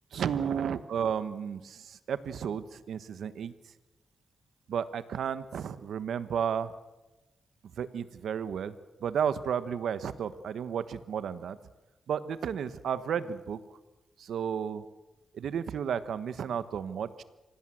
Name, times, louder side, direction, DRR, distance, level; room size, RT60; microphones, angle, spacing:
voice 1, 0.1-3.5 4.7-6.7 7.8-8.7 9.0-11.6 12.1-13.6 14.2-14.8 15.3-17.2, right 8 dB, 80° right, 13 dB, 1.2 m, -32 dB
25.5 x 17.5 x 7.8 m, 1.1 s
cardioid pair, 110°, 0 cm